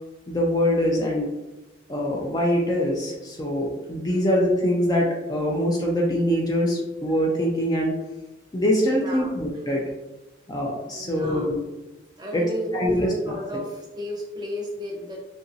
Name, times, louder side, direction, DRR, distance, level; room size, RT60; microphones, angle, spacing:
voice 1, 0.3-1.3 1.9-7.9 8.5-9.8 10.5-11.6 12.3-12.4 12.7-13.3, equal, 20° left, -2 dB, 0.3 m, -23 dB
voice 2, 8.9-9.3 10.9-11.5 12.2-15.2, equal, 20° right, -2 dB, 0.6 m, -33 dB
2.8 x 2.5 x 2.6 m, 1.0 s
head